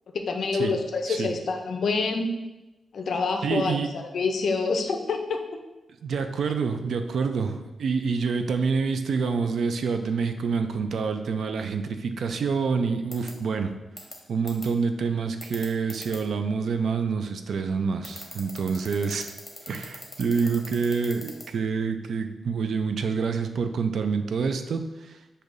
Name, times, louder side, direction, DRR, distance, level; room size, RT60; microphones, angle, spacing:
voice 1, 0.1-2.3 2.9-5.4, left 4 dB, 60° left, 5 dB, 0.4 m, -27 dB
voice 2, 3.4-3.9 6.0-13.7 14.3-19.3 19.7-25.2, right 5 dB, 65° right, 7 dB, 0.3 m, -27 dB
sound 1, 13.1-13.3 14.0-14.1 14.5-14.7 15.4-16.2 18.0-21.4, left 1 dB, 10° left, 0.8 m, -39 dB
6.4 x 2.6 x 2.5 m, 1.0 s
wide cardioid pair, 150°, 0 cm